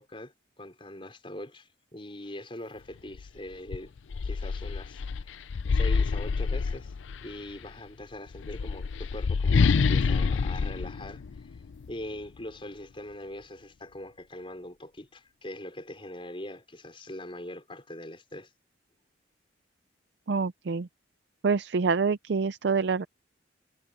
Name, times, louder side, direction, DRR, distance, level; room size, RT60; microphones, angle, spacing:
voice 1, 0.0-3.9 4.2-5.5 5.7-6.9 7.2-11.5 11.9-18.5, left 1 dB, 30° left, 5.2 m, -42 dB
sound 1, 3.1-3.3 3.7-7.3 8.3-11.9, left 5 dB, 85° left, 0.5 m, -27 dB
voice 2, 20.3-20.9 21.4-23.1, right 4 dB, 65° right, 0.5 m, -26 dB
head